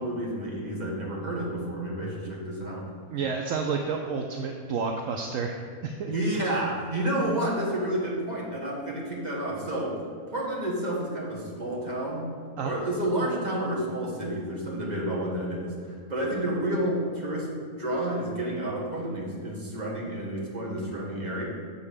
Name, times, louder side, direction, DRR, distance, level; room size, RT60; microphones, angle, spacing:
voice 1, 0.0-2.9 6.1-10.0 10.3-12.3 12.6-21.4, right 1 dB, 30° right, -4 dB, 1.8 m, -30 dB
voice 2, 3.1-5.5 5.8-6.1 12.6-12.7, right 5 dB, 70° right, 3 dB, 1.0 m, -30 dB
7.3 x 5.4 x 6.5 m, 2.1 s
omnidirectional pair, 1.5 m